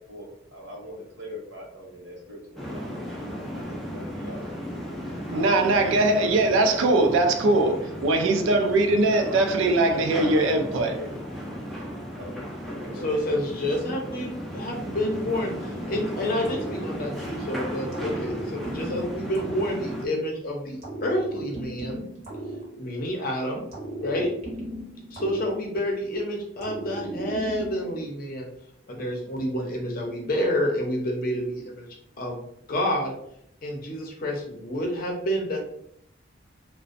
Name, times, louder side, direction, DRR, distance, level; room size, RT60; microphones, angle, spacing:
voice 1, 0.0-4.5 5.1-6.2 6.5-7.1 7.5-7.9 9.1-10.5 10.8-11.1 12.2-12.3 12.8-13.3, left 1 dB, 65° right, -2 dB, 0.8 m, -41 dB
sound 1, 2.6-20.1, equal, ahead, 0.3 m, -35 dB
voice 2, 5.3-11.0, right 2 dB, 85° right, 5 dB, 0.4 m, -21 dB
voice 3, 13.0-15.5 15.9-22.0 22.8-23.6 24.0-24.3 25.1-28.5 28.9-31.9 32.2-32.4 32.7-33.1 33.6-35.6, equal, 45° left, 1 dB, 0.6 m, -28 dB
sound 2, 16.4-17.4 17.9-20.3 20.8-23.2 23.7-26.1 26.6-28.1, right 1 dB, 35° right, 0.6 m, -36 dB
2.4 x 2.1 x 2.4 m, 0.72 s
head